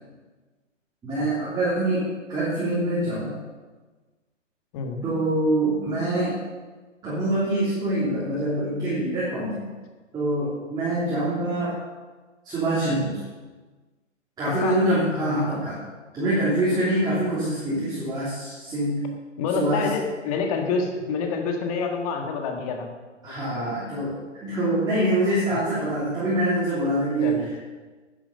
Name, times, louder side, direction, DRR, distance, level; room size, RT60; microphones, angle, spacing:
voice 1, 1.0-3.3 5.0-6.4 7.0-9.7 10.1-11.7 12.4-13.2 14.4-15.8 16.1-19.1 19.5-19.9 23.2-27.4, right 1 dB, 10° right, -10 dB, 3.0 m, -25 dB
voice 2, 19.4-22.9 23.5-23.7 27.2-27.6, left 5 dB, 30° left, 3 dB, 1.7 m, -27 dB
12.0 x 9.5 x 5.3 m, 1.3 s
figure-of-eight pair, 130°, 38 cm